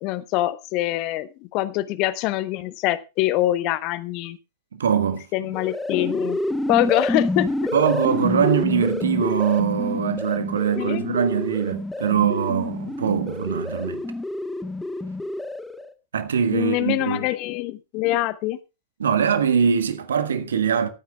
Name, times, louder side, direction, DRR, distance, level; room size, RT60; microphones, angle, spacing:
voice 1, 0.0-4.4 5.3-6.4 6.7-7.5 10.8-11.0 16.5-18.6, left 16 dB, 40° left, 0.9 m, -24 dB
voice 2, 4.7-5.2 7.7-14.0 16.1-17.3 19.0-20.9, right 7 dB, 65° right, 1.4 m, -22 dB
sound 1, 5.4-15.9, left 2 dB, 5° left, 1.2 m, -28 dB
23.0 x 9.5 x 2.3 m
figure-of-eight pair, 90°, 0 cm